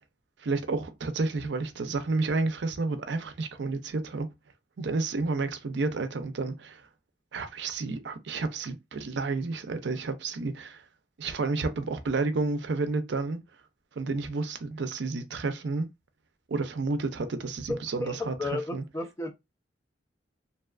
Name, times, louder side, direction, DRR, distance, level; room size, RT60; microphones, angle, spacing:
voice 1, 0.4-4.3 4.8-6.8 7.3-10.8 11.2-13.4 14.0-15.9 16.5-18.8, right 3 dB, 65° right, 0.5 m, -30 dB
voice 2, 17.7-19.3, left 2 dB, 15° left, 0.4 m, -33 dB
2.7 x 2.3 x 2.3 m
head